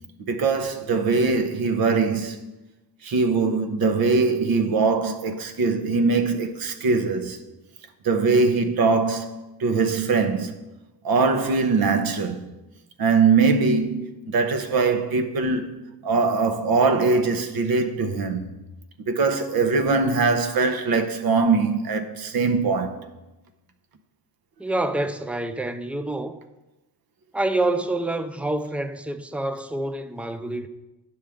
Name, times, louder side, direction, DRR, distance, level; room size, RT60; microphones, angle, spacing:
voice 1, 0.2-2.5 3.0-7.4 8.0-10.5 11.0-12.5 13.0-15.8 16.0-18.6 19.0-23.1, right 4 dB, 55° right, 0.9 m, -22 dB
voice 2, 24.6-26.4 27.3-30.7, right 2 dB, 5° right, 0.3 m, -27 dB
9.7 x 6.3 x 3.5 m
cardioid pair, 100°, 43 cm